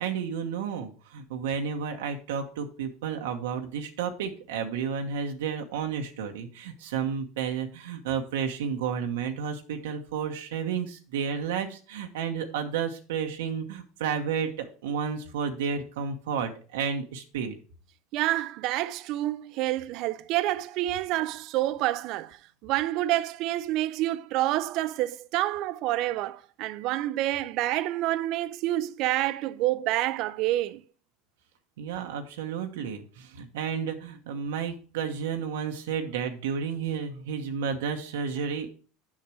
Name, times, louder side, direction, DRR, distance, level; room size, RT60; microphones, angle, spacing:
voice 1, 0.0-17.6 31.8-38.7, right 7 dB, 85° right, 1.0 m, -31 dB
voice 2, 18.1-30.8, right 15 dB, 60° right, 0.5 m, -28 dB
7.4 x 5.8 x 4.8 m
supercardioid pair, 110°, 0 cm